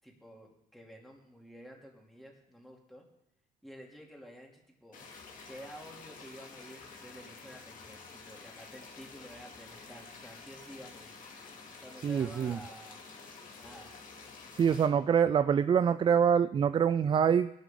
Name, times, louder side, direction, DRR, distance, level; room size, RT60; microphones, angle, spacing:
voice 1, 0.0-3.0 3.6-5.0 5.5-11.1 11.8-13.0 13.6-13.9, equal, ahead, -1 dB, 3.0 m, -51 dB
sound 1, 4.9-14.9, left 4 dB, 50° left, 2.6 m, -50 dB
voice 2, 12.0-12.6 14.5-17.5, right 7 dB, 30° right, 13 dB, 0.4 m, -25 dB
19.0 x 11.5 x 3.8 m, 0.82 s
cardioid pair, 110°, 17 cm